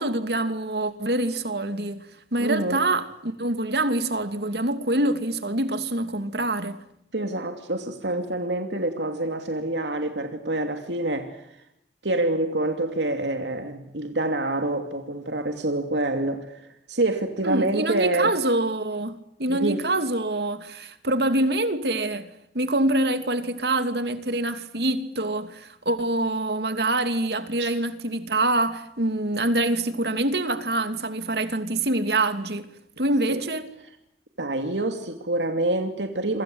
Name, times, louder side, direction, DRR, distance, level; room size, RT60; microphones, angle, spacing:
voice 1, 0.0-2.0 2.3-6.8 17.4-22.3 22.5-32.7 33.0-33.7, right 2 dB, 65° right, 2.7 m, -25 dB
voice 2, 2.4-2.8 7.1-11.6 12.0-18.4 19.5-19.8 27.6-27.7 33.3-33.4 34.4-36.4, right 2 dB, 85° right, 2.8 m, -27 dB
28.5 x 26.0 x 8.0 m
head